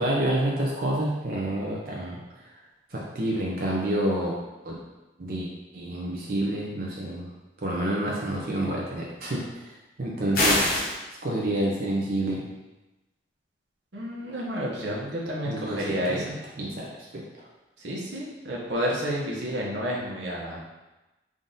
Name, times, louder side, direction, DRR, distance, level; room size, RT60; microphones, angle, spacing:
voice 1, 0.0-2.2 2.9-4.4 4.6-4.7 5.2-5.5 5.7-7.3 7.6-9.7 10.0-10.6 11.2-12.4 15.5-16.3 16.6-17.2, right 1 dB, 55° right, -4 dB, 0.6 m, -28 dB
sound 1, 10.3-10.9, left 1 dB, 55° left, 0.8 m, -22 dB
voice 2, 13.9-16.3 17.8-20.6, equal, 90° right, -4 dB, 0.9 m, -30 dB
3.7 x 2.6 x 3.8 m, 1.1 s
head